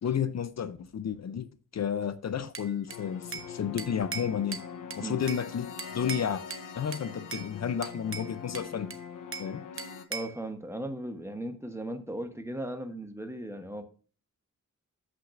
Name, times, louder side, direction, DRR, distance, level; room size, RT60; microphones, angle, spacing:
voice 1, 0.0-1.5 1.7-4.6 5.0-6.4 6.7-8.9 9.4-9.7, left 8 dB, 55° left, 0.6 m, -32 dB
Bell / Glass, 2.5-3.5 3.8-5.5 5.8-6.7 6.9-7.5 7.8-9.5 9.8-10.4, right 5 dB, 45° right, 0.8 m, -40 dB
sound 1, 2.9-10.1, left 7 dB, 80° left, 0.9 m, -43 dB
voice 2, 10.1-13.8, right 1 dB, 10° right, 1.0 m, -37 dB
14.0 x 6.0 x 2.5 m
wide cardioid pair, 160°, 31 cm